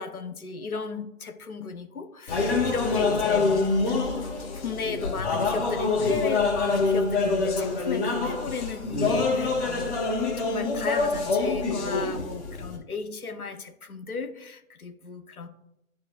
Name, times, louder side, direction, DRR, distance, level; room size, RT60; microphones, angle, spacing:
voice 1, 0.0-3.6 3.9-4.0 4.5-10.0 10.4-15.5, left 4 dB, 85° left, 7 dB, 1.1 m, -35 dB
sound 1, 2.3-12.8, left 3 dB, 50° left, 2.3 m, -26 dB
12.0 x 4.2 x 2.5 m, 0.84 s
figure-of-eight pair, 140°, 43 cm